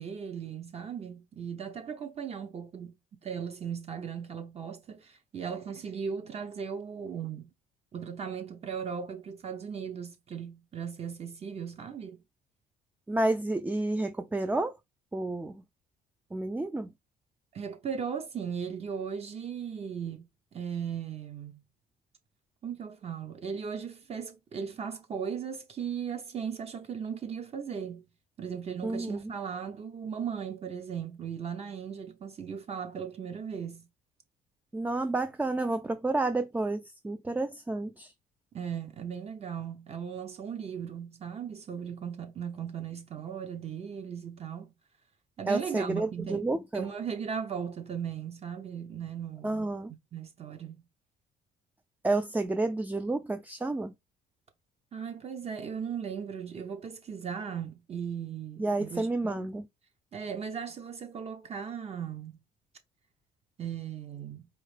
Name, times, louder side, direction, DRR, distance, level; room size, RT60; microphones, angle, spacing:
voice 1, 0.0-2.9 3.2-7.5 7.9-12.2 17.5-21.6 22.6-28.0 28.4-33.9 38.5-44.7 45.4-46.4 46.7-49.8 50.1-50.8 54.9-59.5 60.1-62.4 63.6-64.5, right 7 dB, 40° right, 0.8 m, -37 dB
voice 2, 13.1-14.7 15.1-15.5 16.3-16.9 28.8-29.3 34.7-38.1 45.5-46.9 49.4-49.9 52.0-53.9 58.6-59.6, right 2 dB, 10° right, 0.4 m, -30 dB
4.7 x 2.6 x 3.2 m
cardioid pair, 110°, 17 cm